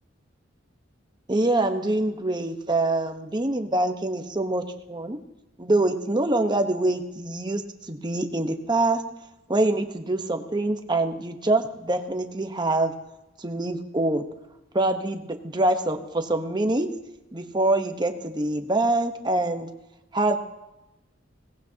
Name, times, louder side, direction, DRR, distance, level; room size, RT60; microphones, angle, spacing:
voice 1, 1.3-5.2 5.6-7.6 7.9-9.0 9.5-12.9 13.4-14.2 14.7-16.9 17.3-19.7 20.1-20.4, right 2 dB, 25° right, 6 dB, 1.1 m, -25 dB
21.5 x 18.0 x 2.9 m, 1.0 s
head